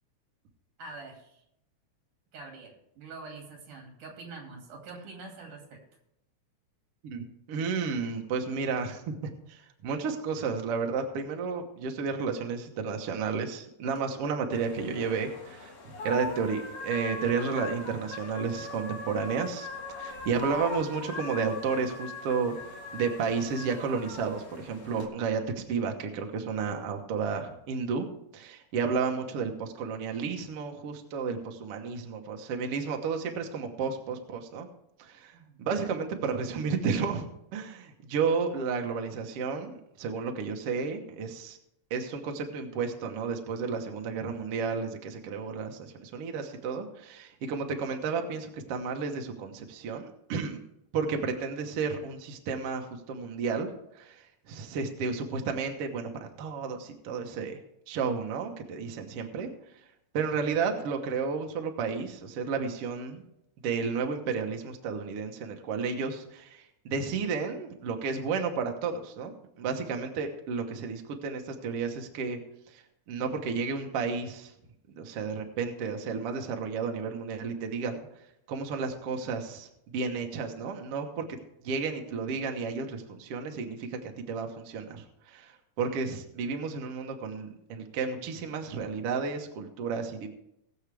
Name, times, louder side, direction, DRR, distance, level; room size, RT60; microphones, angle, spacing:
voice 1, 0.8-1.4 2.3-5.8 35.3-35.6, right 3 dB, 85° right, 1 dB, 3.9 m, -45 dB
voice 2, 7.0-19.7 20.0-28.1 28.3-34.7 35.0-41.6 41.9-50.6 50.9-57.6 57.9-59.9 60.1-63.2 63.6-72.4 72.7-74.5 74.9-81.2 81.6-90.3, right 5 dB, 60° right, 4 dB, 1.9 m, -32 dB
sound 1, 14.5-25.1, left 3 dB, 55° left, 2.5 m, -40 dB
20.0 x 7.3 x 3.4 m, 0.79 s
omnidirectional pair, 3.5 m